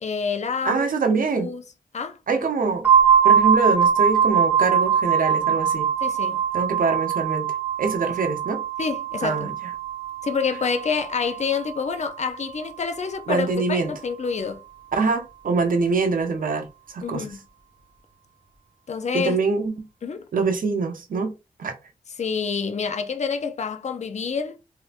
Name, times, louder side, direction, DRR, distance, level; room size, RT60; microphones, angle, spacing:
voice 1, 0.0-0.9 1.3-1.6 1.9-2.2 6.0-6.4 8.8-9.5 10.2-14.6 17.0-17.4 18.9-19.4 20.0-20.2 22.2-24.6, left 5 dB, 55° left, 0.5 m, -27 dB
voice 2, 0.6-1.5 2.3-2.9 3.2-5.9 6.5-7.5 7.8-8.6 9.2-9.5 13.3-13.9 14.9-16.7 16.9-17.3 19.1-19.9 20.3-21.3 21.6-21.7, right 4 dB, 75° right, 0.7 m, -24 dB
sound 1, 2.8-12.5, right 7 dB, 15° right, 1.9 m, -22 dB
3.4 x 2.8 x 2.4 m
cardioid pair, 50°, 14 cm